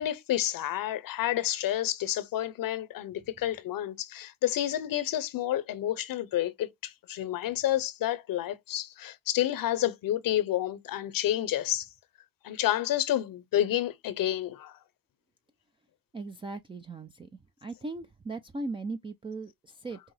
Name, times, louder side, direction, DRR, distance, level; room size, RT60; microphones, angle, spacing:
voice 1, 0.0-11.9 12.4-14.8, left 12 dB, 60° left, 0.7 m, -29 dB
voice 2, 16.1-17.3 17.6-20.0, right 3 dB, 15° right, 0.4 m, -38 dB
5.5 x 2.0 x 3.1 m
supercardioid pair, 75°, 38 cm